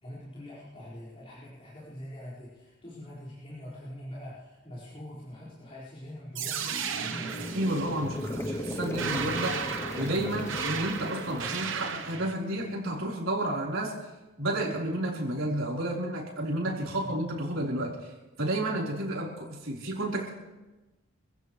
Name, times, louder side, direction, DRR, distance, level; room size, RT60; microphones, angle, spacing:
voice 1, 0.0-7.6 16.7-17.1, left 1 dB, 30° left, -11 dB, 5.1 m, -44 dB
sound 1, 6.3-11.2, equal, 75° left, 7.6 m, -44 dB
sound 2, 6.3-12.3, right 6 dB, 65° right, 1.0 m, -35 dB
sound 3, 6.8-12.7, left 1 dB, 15° left, 0.8 m, -38 dB
voice 2, 7.5-9.7 10.0-13.9 14.4-18.0 18.4-20.3, right 1 dB, 85° right, -3 dB, 4.2 m, -31 dB
26.0 x 15.5 x 3.2 m, 1.1 s
head